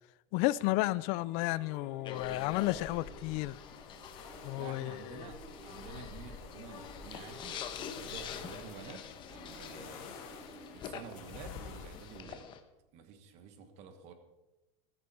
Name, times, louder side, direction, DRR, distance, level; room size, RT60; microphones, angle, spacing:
voice 1, 0.3-3.6 4.4-5.3, left 18 dB, 40° left, 0.4 m, -32 dB
sound 1, 1.1-10.9, right 1 dB, 5° right, 2.3 m, -54 dB
sound 2, 2.0-12.6, left 8 dB, 25° left, 1.0 m, -46 dB
sound 3, 2.1-12.2, left 5 dB, 80° left, 4.0 m, -51 dB
voice 2, 4.6-10.1 10.7-12.5 12.9-14.1, right 6 dB, 40° right, 1.4 m, -50 dB
14.5 x 14.0 x 4.3 m
supercardioid pair, 175°, 18 cm